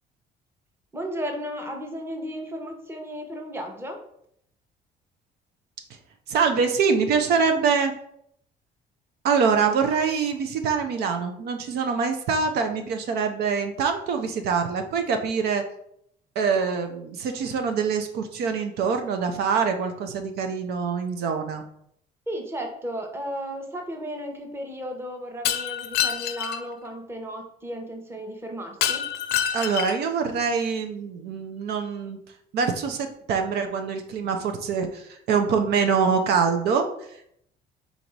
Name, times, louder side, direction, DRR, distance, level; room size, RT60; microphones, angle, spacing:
voice 1, 0.9-4.0 22.3-29.1, equal, 15° right, 3 dB, 0.9 m, -34 dB
voice 2, 6.3-7.9 9.2-15.6 16.4-21.6 29.5-32.2 32.5-37.2, right 5 dB, 70° right, 6 dB, 0.6 m, -24 dB
Shatter, 25.4-26.6 28.8-30.1, left 10 dB, 70° left, 0.5 m, -26 dB
4.0 x 2.6 x 4.6 m, 0.71 s
cardioid pair, 110°, 17 cm